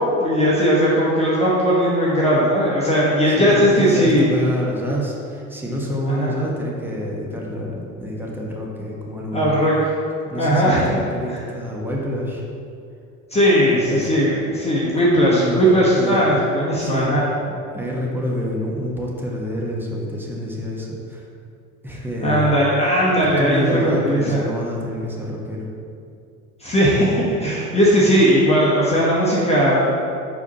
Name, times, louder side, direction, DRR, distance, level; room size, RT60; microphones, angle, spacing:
voice 1, 0.2-4.4 6.1-6.3 9.3-9.7 10.4-10.9 13.3-17.2 22.2-24.4 26.6-30.1, equal, 15° left, -7 dB, 1.3 m, -18 dB
voice 2, 3.2-9.6 10.3-12.4 13.6-14.1 15.2-15.6 15.9-16.4 16.8-17.1 17.5-21.3 21.8-22.5 23.1-25.7, equal, 5° right, -3 dB, 1.3 m, -27 dB
6.3 x 4.9 x 4.1 m, 2.4 s
figure-of-eight pair, 65°, 43 cm